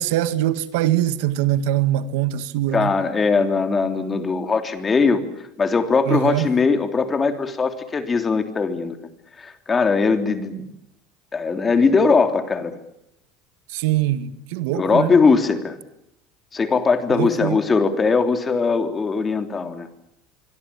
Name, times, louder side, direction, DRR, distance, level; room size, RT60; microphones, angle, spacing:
voice 1, 0.0-2.9 6.1-6.5 13.7-15.1 17.1-17.6, right 13 dB, 85° right, 1.9 m, -22 dB
voice 2, 2.7-5.2 5.6-9.0 9.4-10.6 11.3-12.8 14.7-15.8 16.5-19.9, left 4 dB, 20° left, 3.3 m, -20 dB
25.5 x 23.5 x 8.6 m
cardioid pair, 135°, 0 cm